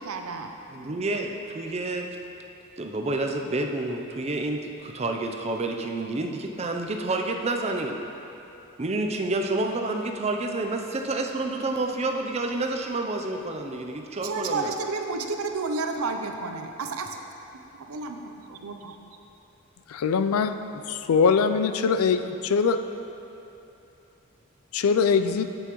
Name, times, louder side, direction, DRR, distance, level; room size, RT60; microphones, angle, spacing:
voice 1, 0.0-0.5 14.2-17.2 17.7-19.0, right 3 dB, 85° right, 5 dB, 0.6 m, -31 dB
voice 2, 0.7-2.1 2.8-8.0 8.8-14.7, right 2 dB, 30° right, 3 dB, 0.5 m, -29 dB
voice 3, 19.9-20.5 20.9-22.8 24.7-25.5, left 5 dB, 80° left, 9 dB, 0.4 m, -22 dB
8.1 x 8.0 x 3.0 m, 2.9 s
head